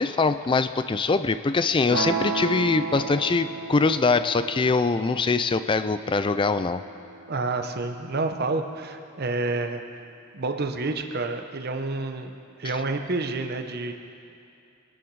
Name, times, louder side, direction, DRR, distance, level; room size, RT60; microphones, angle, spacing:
voice 1, 0.0-6.8 12.6-12.8, left 4 dB, 25° left, 12 dB, 0.4 m, -23 dB
sound 1, 1.9-7.9, right 3 dB, 90° right, 1.4 m, -34 dB
voice 2, 7.3-9.8 10.3-12.3 12.6-13.9, right 3 dB, 45° right, 6 dB, 0.9 m, -29 dB
23.5 x 11.0 x 4.7 m, 2.6 s
head